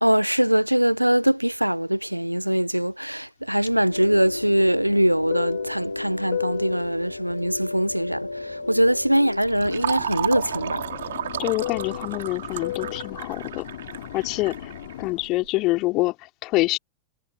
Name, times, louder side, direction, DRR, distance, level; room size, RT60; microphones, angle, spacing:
voice 1, 0.0-10.8, equal, 90° right, 1.0 m, -22 dB
Fixed-wing aircraft airplane, 3.7-9.1 9.4-15.3, left 13 dB, 60° left, 2.7 m, -36 dB
sound 1, 3.9-9.4, left 2 dB, 85° left, 4.4 m, -33 dB
Fill (with liquid), 9.1-15.5, right 10 dB, 65° right, 4.4 m, -33 dB
voice 2, 11.4-13.6 14.1-14.7 15.0-16.1 16.4-16.8, left 21 dB, 40° left, 4.7 m, -25 dB
figure-of-eight pair, 90°, 0 cm